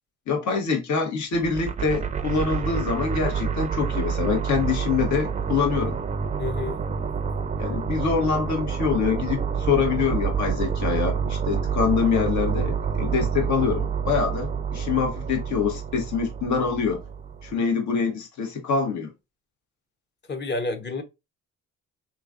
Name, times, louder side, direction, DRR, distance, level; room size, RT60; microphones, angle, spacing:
voice 1, 0.3-6.0 7.6-17.0 17.4-19.1, left 5 dB, 70° left, 1.3 m, -25 dB
sound 1, 1.3-17.5, right 6 dB, 25° right, 0.4 m, -28 dB
voice 2, 6.4-6.8 20.3-21.0, left 2 dB, 35° left, 0.9 m, -29 dB
3.7 x 3.0 x 2.4 m
cardioid pair, 90°, 30 cm